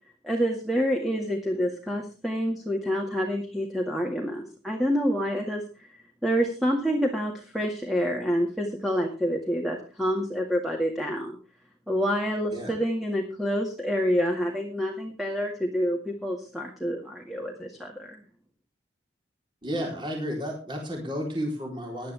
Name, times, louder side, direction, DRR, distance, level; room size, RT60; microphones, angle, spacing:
voice 1, 0.2-5.6 6.2-11.3 11.9-18.2, equal, ahead, 0 dB, 2.0 m, -27 dB
voice 2, 19.6-22.1, equal, 25° right, 0 dB, 3.9 m, -32 dB
18.5 x 11.0 x 3.5 m, 0.32 s
head